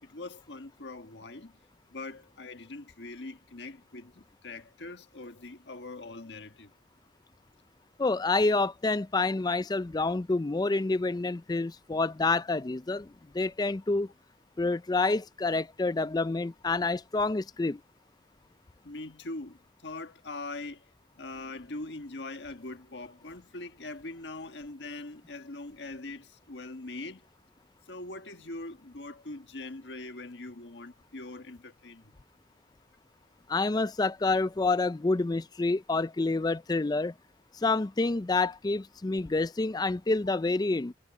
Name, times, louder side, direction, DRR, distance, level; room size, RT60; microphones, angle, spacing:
voice 1, 0.0-1.6 1.9-6.7 18.8-20.9 21.1-27.3 27.9-32.2, left 2 dB, 70° left, 1.5 m, -42 dB
voice 2, 8.0-14.1 14.6-17.8 33.5-37.1 37.5-40.9, left 3 dB, 20° left, 0.4 m, -28 dB
head